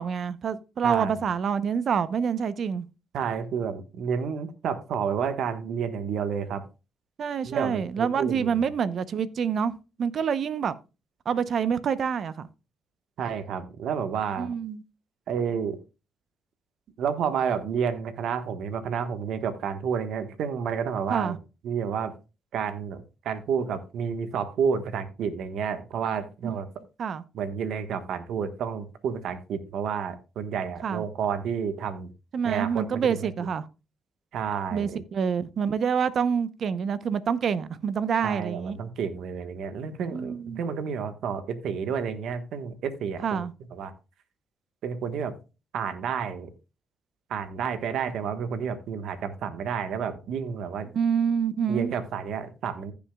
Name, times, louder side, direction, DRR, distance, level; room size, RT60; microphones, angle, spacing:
voice 1, 0.0-2.9 7.2-10.8 11.3-12.5 14.4-14.8 21.1-21.4 26.4-26.6 27.0-27.2 30.8-31.0 32.3-33.7 34.7-38.8 40.1-40.6 43.2-43.5 50.9-51.9, right 7 dB, 55° right, 0.7 m, -27 dB
voice 2, 0.8-1.1 3.1-6.6 7.4-8.6 13.2-14.5 15.3-15.8 17.0-21.4 21.6-22.1 22.5-26.7 27.3-32.1 32.4-33.3 34.3-35.0 38.2-43.4 43.7-43.9 44.8-45.3 45.7-46.5 47.3-50.9 51.7-52.9, right 7 dB, 75° right, 1.3 m, -30 dB
15.0 x 7.1 x 2.3 m
cardioid pair, 90°, 0 cm